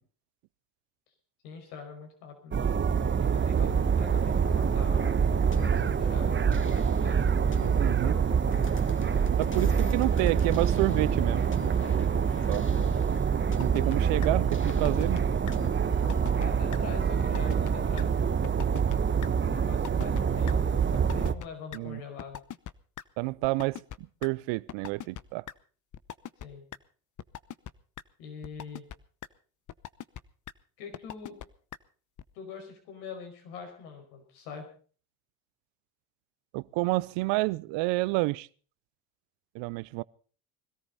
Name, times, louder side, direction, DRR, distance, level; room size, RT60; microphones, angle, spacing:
voice 1, 1.4-2.7 3.3-7.4 12.7-13.1 16.4-18.7 19.3-22.4 26.4-26.6 28.2-28.8 30.8-31.4 32.3-34.7, left 6 dB, 85° left, 5.4 m, -44 dB
sound 1, 2.5-21.3, right 7 dB, 25° right, 1.1 m, -26 dB
sound 2, 5.3-16.4, left 4 dB, 25° left, 2.3 m, -46 dB
voice 2, 7.8-8.2 9.4-11.4 12.5-12.7 13.6-15.3 21.7-22.0 23.2-23.8 24.2-25.4 36.5-38.5 39.5-40.0, right 22 dB, 75° right, 0.7 m, -29 dB
sound 3, 13.6-14.0 14.2-14.3 14.7-15.2 15.5-15.6 15.9-16.5 16.7-16.8 17.2-17.7 18.0-18.1 18.4-19.0 19.2-19.3 19.7-20.2 20.5-20.6 20.9-21.5 21.7-21.8 22.2-23.0 23.4-24.3 24.7-25.2 25.5-25.6 25.9-26.4 26.7-26.8 27.2-27.7 28.0-28.1 28.4-28.9 29.2-29.3 29.7-30.2 30.5-30.6 30.9-31.4 31.7-31.8 32.2-32.3, left 10 dB, 40° left, 0.9 m, -40 dB
21.5 x 14.0 x 4.1 m
supercardioid pair, 85°, 45 cm